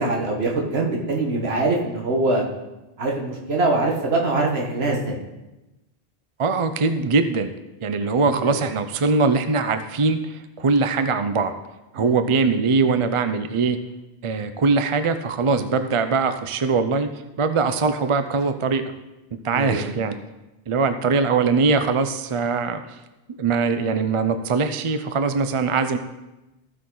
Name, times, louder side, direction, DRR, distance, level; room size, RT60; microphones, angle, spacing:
voice 1, 0.0-2.4 3.0-5.2 8.1-8.6 11.9-12.1 19.5-19.9, right 2 dB, 80° right, -1 dB, 1.6 m, -23 dB
voice 2, 6.4-7.5 7.8-11.5 11.9-13.8 14.2-17.1 17.4-18.8 19.4-20.2 20.7-23.0 23.3-26.0, right 4 dB, 40° right, 9 dB, 0.5 m, -22 dB
15.0 x 5.9 x 3.9 m, 1.0 s
omnidirectional pair, 1.1 m